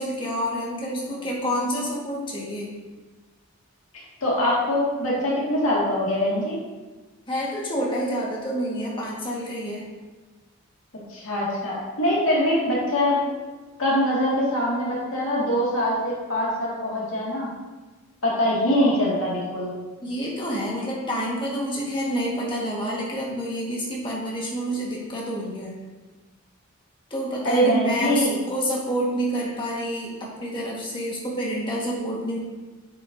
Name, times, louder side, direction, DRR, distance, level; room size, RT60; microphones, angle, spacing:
voice 1, 0.0-2.8 7.3-9.9 20.0-25.7 27.1-32.4, equal, 20° left, -4 dB, 1.6 m, -28 dB
voice 2, 4.2-6.5 11.1-13.2 13.8-17.5 18.2-19.7 27.4-28.4, equal, 65° left, -5 dB, 2.1 m, -23 dB
8.5 x 7.3 x 2.7 m, 1.3 s
head